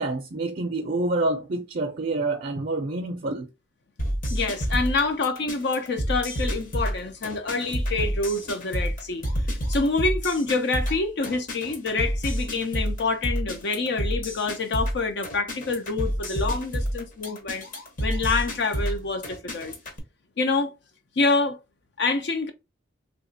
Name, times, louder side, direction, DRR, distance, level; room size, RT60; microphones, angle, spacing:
voice 1, 0.0-3.5, right 2 dB, 50° right, 0.5 m, -27 dB
sound 1, 4.0-20.0, equal, 45° left, 0.9 m, -29 dB
voice 2, 4.3-9.2 9.7-17.6 18.0-19.7 20.4-20.7 21.2-21.6 22.0-22.5, left 3 dB, 60° left, 0.5 m, -26 dB
3.4 x 2.8 x 2.7 m
head